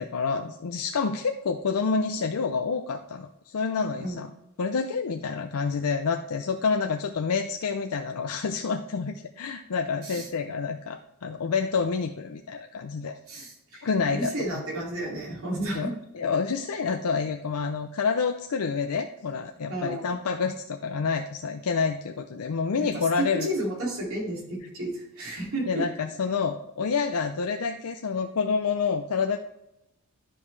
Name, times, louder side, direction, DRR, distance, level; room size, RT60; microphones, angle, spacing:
voice 1, 0.0-4.3 4.6-13.5 13.8-14.6 15.7-23.5 25.7-29.4, left 5 dB, 80° left, 5 dB, 0.5 m, -28 dB
voice 2, 13.3-15.9 19.7-20.0 22.8-22.9 23.4-25.8, right 1 dB, 70° right, -3 dB, 2.6 m, -32 dB
11.5 x 5.3 x 3.2 m, 0.84 s
head